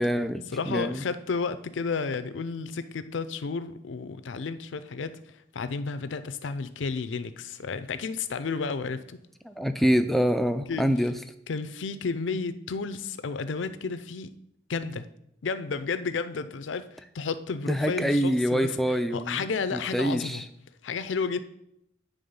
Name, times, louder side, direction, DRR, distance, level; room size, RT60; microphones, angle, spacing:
voice 1, 0.0-1.0 9.4-11.1 17.7-20.5, equal, ahead, 9 dB, 0.3 m, -26 dB
voice 2, 0.5-5.2 5.5-9.2 10.7-10.9 11.5-14.3 14.7-15.1 15.4-18.7 19.1-20.4 20.8-21.4, left 4 dB, 85° left, 12 dB, 0.5 m, -32 dB
9.5 x 3.6 x 5.3 m, 0.79 s
head